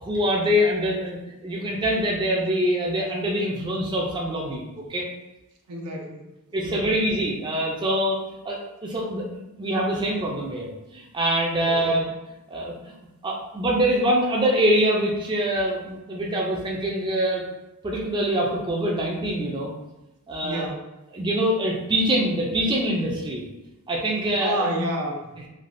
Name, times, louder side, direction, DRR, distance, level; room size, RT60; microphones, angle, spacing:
voice 1, 0.0-5.0 6.5-8.2 8.4-9.3 9.6-12.0 12.5-12.7 13.2-17.4 17.8-19.7 20.3-20.7 21.1-23.4 23.9-24.7, equal, 20° right, -2 dB, 0.4 m, -24 dB
voice 2, 5.7-6.2 6.6-7.0 11.6-12.0 20.4-20.9 24.4-25.5, equal, 85° right, 1 dB, 0.6 m, -30 dB
3.3 x 2.3 x 2.5 m, 0.97 s
head